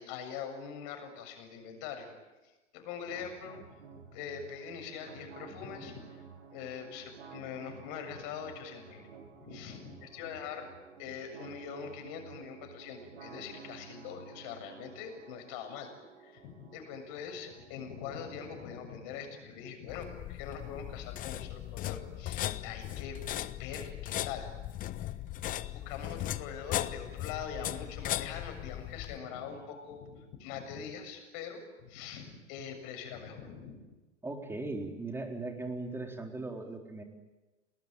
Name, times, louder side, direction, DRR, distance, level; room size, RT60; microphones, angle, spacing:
voice 1, 0.0-2.1 2.7-3.6 4.1-6.2 6.5-9.1 9.4-10.7 11.0-15.9 16.2-23.2 23.6-24.5 25.7-33.8, left 7 dB, 40° left, 5 dB, 7.3 m, -43 dB
sound 1, 3.1-19.1, right 5 dB, 60° right, 6.1 m, -52 dB
sound 2, 19.9-29.2, left 13 dB, 25° left, 0.9 m, -38 dB
voice 2, 34.2-37.0, right 2 dB, 5° right, 3 dB, 4.1 m, -38 dB
29.5 x 20.0 x 9.1 m, 1.1 s
figure-of-eight pair, 100°, 36 cm